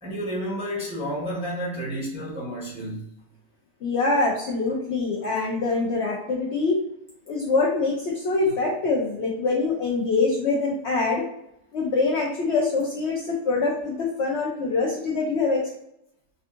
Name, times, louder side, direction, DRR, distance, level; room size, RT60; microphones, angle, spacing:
voice 1, 0.0-3.0, equal, 5° right, -6 dB, 0.6 m, -31 dB
voice 2, 3.8-6.8 7.3-11.2 11.7-15.6, left 3 dB, 80° left, -3 dB, 0.6 m, -24 dB
3.4 x 2.5 x 2.4 m, 0.80 s
omnidirectional pair, 1.8 m